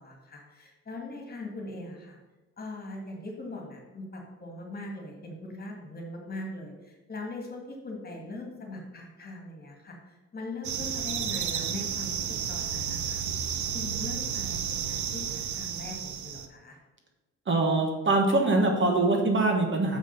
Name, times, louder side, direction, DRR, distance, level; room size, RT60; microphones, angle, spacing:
voice 1, 0.0-2.2 2.6-12.2 12.5-13.2 13.7-16.8, left 2 dB, 30° left, 1 dB, 2.0 m, -40 dB
sound 1, 10.6-16.5, right 8 dB, 75° right, 0.8 m, -32 dB
voice 2, 17.5-20.0, right 2 dB, 40° right, 2 dB, 1.4 m, -23 dB
6.4 x 5.0 x 5.3 m, 1.1 s
cardioid pair, 90°, 30 cm